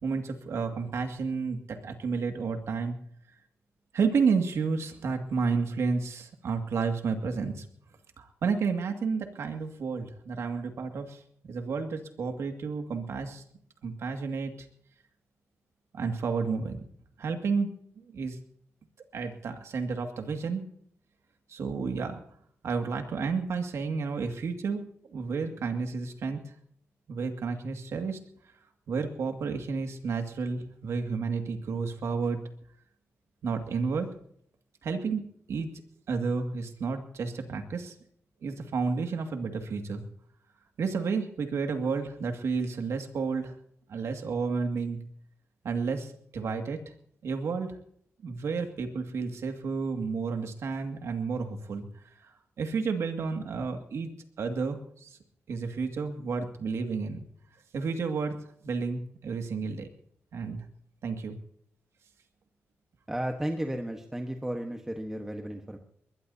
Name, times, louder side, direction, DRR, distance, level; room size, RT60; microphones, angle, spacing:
voice 1, 0.0-3.0 3.9-7.7 8.2-11.2 11.5-13.4 13.8-14.7 15.9-16.8 17.2-17.7 18.1-18.4 19.1-20.6 21.5-22.2 22.6-24.8 25.1-26.4 27.1-28.2 28.9-32.4 33.4-34.1 34.8-35.7 36.1-37.9 38.4-40.0 40.8-43.5 43.9-45.0 45.6-46.8 47.2-47.7 48.2-51.9 52.2-52.3 52.6-54.1 54.4-55.2 55.5-57.2 57.7-58.4 58.6-59.9 60.3-60.7 61.0-61.4, right 5 dB, 70° right, 5 dB, 2.1 m, -31 dB
voice 2, 63.1-65.8, right 1 dB, 10° right, 3 dB, 1.3 m, -33 dB
21.0 x 21.0 x 2.8 m, 0.68 s
wide cardioid pair, 130°, 5 cm